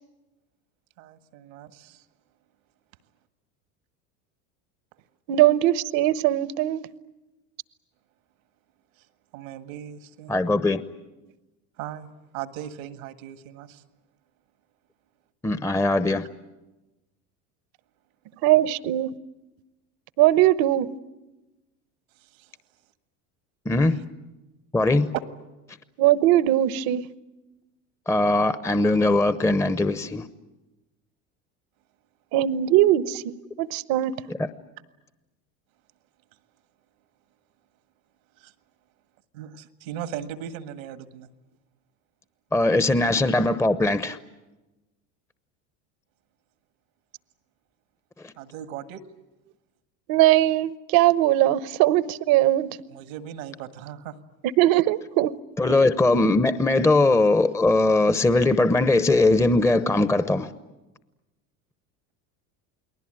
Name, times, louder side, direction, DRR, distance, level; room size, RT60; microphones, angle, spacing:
voice 1, 1.0-2.0 9.3-10.3 11.8-12.1 12.3-13.8 22.2-22.5 23.9-24.0 38.4-38.5 39.3-41.3 43.0-43.1 48.4-49.0 52.9-54.2, right 10 dB, 85° right, 1.8 m, -38 dB
voice 2, 5.3-6.8 18.4-19.1 20.2-20.9 26.0-27.0 32.3-34.2 50.1-52.7 54.6-55.4, right 14 dB, 60° right, 1.1 m, -20 dB
voice 3, 10.3-10.8 15.4-16.3 23.6-24.0 24.7-25.1 28.1-30.3 34.3-34.5 42.5-44.2 48.2-48.3 55.6-60.5, left 2 dB, 5° left, 0.9 m, -20 dB
29.0 x 20.0 x 8.9 m
supercardioid pair, 95°, 40 cm